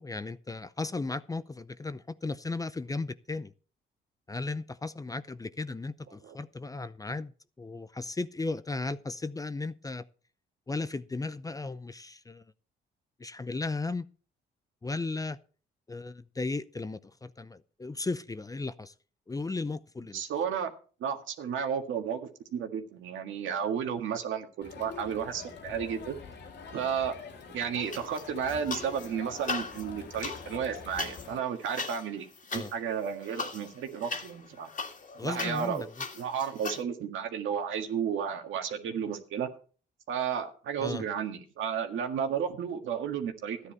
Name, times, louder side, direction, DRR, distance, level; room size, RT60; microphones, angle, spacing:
voice 1, 0.0-3.5 4.3-10.0 10.7-12.5 13.2-14.1 14.8-15.4 15.9-18.9 19.3-20.2 32.5-32.7 35.2-36.0 40.8-41.0, left 3 dB, 15° left, 0.6 m, -35 dB
voice 2, 20.1-20.7 21.0-26.2 26.7-27.1 27.5-32.3 32.5-34.7 35.2-35.8 36.2-39.5 40.1-43.7, right 7 dB, 80° right, 1.8 m, -33 dB
Crowd, 24.6-31.4, left 5 dB, 60° left, 2.1 m, -45 dB
sound 1, 27.9-29.1 29.4-36.8, left 4 dB, 40° left, 2.0 m, -39 dB
13.5 x 9.7 x 4.5 m
cardioid pair, 90°, 20 cm